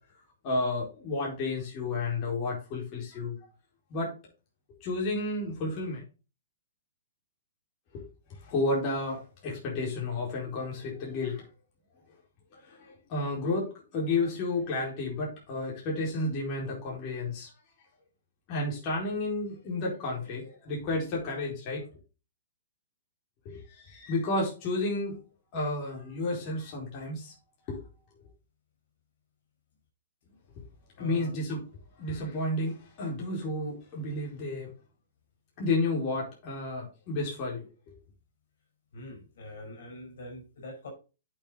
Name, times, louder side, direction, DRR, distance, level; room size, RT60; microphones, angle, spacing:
voice 1, 0.4-3.4 3.9-4.1 4.8-6.0 7.9-8.0 8.4-11.5 12.5-17.5 18.5-21.8 23.4-25.2 25.5-27.3 27.7-27.8 31.0-31.6 32.0-34.7 35.6-37.9, left 2 dB, 40° left, -3 dB, 4.3 m, -31 dB
voice 2, 31.0-31.3 38.9-40.9, left 1 dB, 65° left, 3 dB, 4.9 m, -44 dB
8.6 x 6.5 x 3.9 m, 0.32 s
hypercardioid pair, 130°, 0 cm